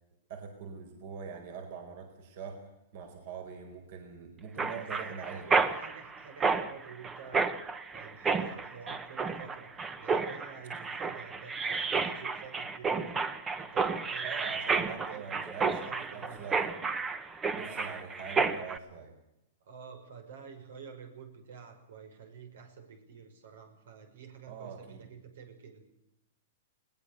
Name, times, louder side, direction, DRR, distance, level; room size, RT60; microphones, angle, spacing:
voice 1, 0.3-5.4 14.2-16.7 17.5-19.1 24.5-25.1, right 6 dB, 50° right, 5 dB, 4.7 m, -43 dB
Mechanisms, 4.6-18.8, right 4 dB, 15° right, 1.1 m, -31 dB
voice 2, 4.8-7.5 7.9-13.2 13.6-14.3 14.7-15.3 15.7-16.5 19.6-25.8, right 6 dB, 75° right, 6 dB, 5.8 m, -49 dB
21.5 x 19.5 x 6.8 m, 0.86 s
hypercardioid pair, 155°, 0 cm